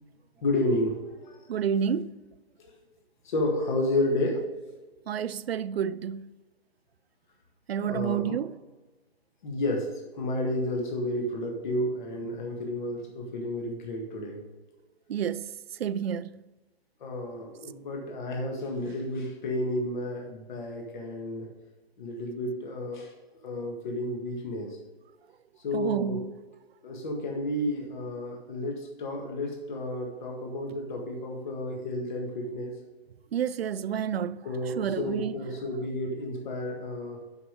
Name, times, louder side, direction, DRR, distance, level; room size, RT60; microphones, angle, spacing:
voice 1, 0.4-1.4 2.6-2.8 3.2-4.4 7.8-8.4 9.4-14.4 17.0-21.5 22.0-23.1 23.4-24.8 25.6-26.2 26.8-32.7 34.4-37.2, left 1 dB, 50° left, 1.7 m, -31 dB
voice 2, 1.5-2.2 5.1-6.3 7.7-8.5 15.1-15.5 15.8-16.3 25.7-26.2 33.3-34.4 34.8-35.3, right 8 dB, 70° right, 0.5 m, -29 dB
7.1 x 5.9 x 5.0 m
hypercardioid pair, 140°, 31 cm